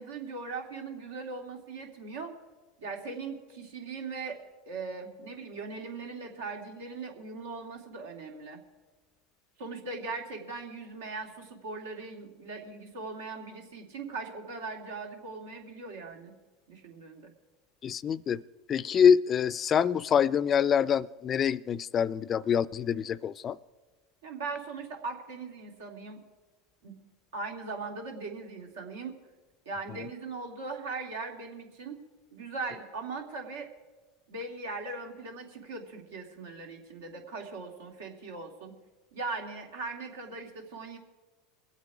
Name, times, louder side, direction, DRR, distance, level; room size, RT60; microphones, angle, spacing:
voice 1, 0.0-2.3 2.8-4.4 4.7-8.6 9.6-16.3 16.7-17.3 24.2-26.2 26.8-26.9 27.3-29.1 29.7-32.0 32.3-33.7 34.3-38.7 39.1-41.0, right 3 dB, 90° right, 2.4 m, -39 dB
voice 2, 17.8-18.4 18.7-23.6, left 7 dB, 35° left, 0.4 m, -25 dB
22.5 x 8.3 x 4.9 m
supercardioid pair, 110°, 0 cm